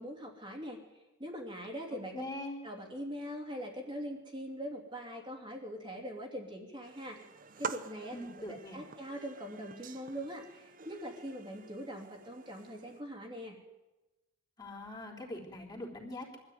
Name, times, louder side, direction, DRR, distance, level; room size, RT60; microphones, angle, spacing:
voice 1, 0.0-2.2 2.6-7.2 7.6-13.6, equal, 25° right, 0 dB, 2.9 m, -42 dB
voice 2, 1.9-2.6 8.1-8.8 14.6-16.4, left 1 dB, 20° left, -1 dB, 3.7 m, -43 dB
sound 1, 6.8-13.0, right 5 dB, 40° right, 0.9 m, -47 dB
23.5 x 13.5 x 9.4 m, 1.1 s
head